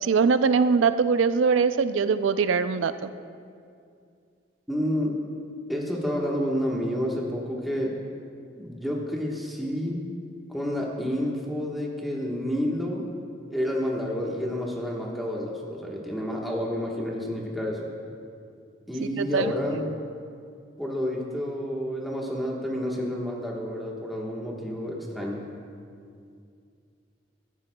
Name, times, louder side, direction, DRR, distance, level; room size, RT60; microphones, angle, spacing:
voice 1, 0.0-3.1 19.0-19.5, right 5 dB, 85° right, 12 dB, 0.4 m, -22 dB
voice 2, 4.7-5.2 5.7-7.9 8.5-10.0 10.5-13.1 13.5-17.9 18.9-19.9 20.8-25.4, equal, ahead, -3 dB, 1.2 m, -29 dB
16.5 x 13.0 x 2.3 m, 2.4 s
head